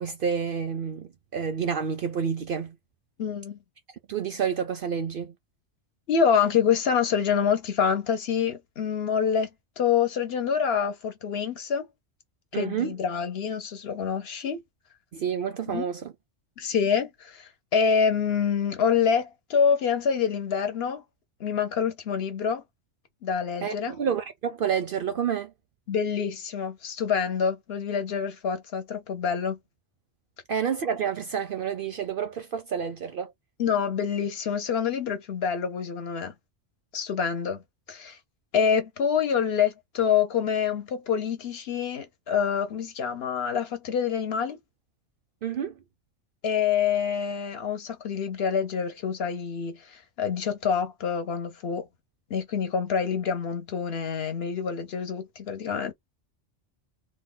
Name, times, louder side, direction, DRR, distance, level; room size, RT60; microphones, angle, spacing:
voice 1, 0.0-2.8 4.1-5.3 12.5-13.0 15.1-16.1 23.6-25.5 30.5-33.3 45.4-45.8, right 7 dB, 60° right, 0.6 m, -29 dB
voice 2, 3.2-3.6 6.1-9.5 9.8-11.9 12.5-14.6 15.7-15.8 16.6-21.0 21.4-22.6 23.2-24.0 25.9-29.6 33.6-36.3 36.9-37.6 37.9-38.2 38.5-44.6 46.4-51.9 52.3-55.9, left 7 dB, 60° left, 0.9 m, -26 dB
2.7 x 2.2 x 3.7 m
omnidirectional pair, 1.3 m